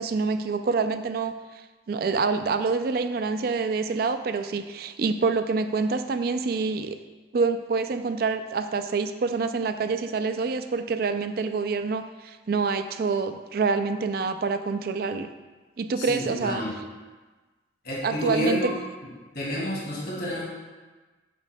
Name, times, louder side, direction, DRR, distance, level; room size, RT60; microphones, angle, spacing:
voice 1, 0.0-1.4 1.9-7.0 7.3-15.3 15.8-16.6 18.0-18.7, right 4 dB, 55° right, 9 dB, 0.4 m, -26 dB
voice 2, 16.0-16.7 17.8-18.7 19.3-20.4, equal, 55° left, -5 dB, 2.5 m, -29 dB
11.0 x 6.9 x 2.3 m, 1.3 s
head